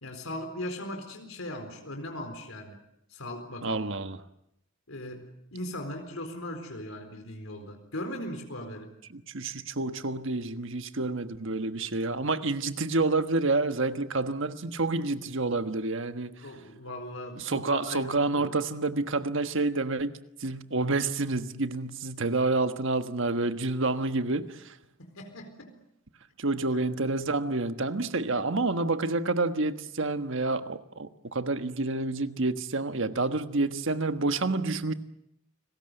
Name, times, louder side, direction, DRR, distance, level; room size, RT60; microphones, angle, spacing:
voice 1, 0.0-2.8 3.1-3.8 4.9-8.9 16.4-18.5 25.0-25.8 26.7-26.8, left 1 dB, 90° left, 4.3 m, -39 dB
voice 2, 3.6-4.2 9.1-16.5 17.4-24.8 26.4-34.9, right 3 dB, 65° right, 1.4 m, -29 dB
30.0 x 20.0 x 8.0 m
head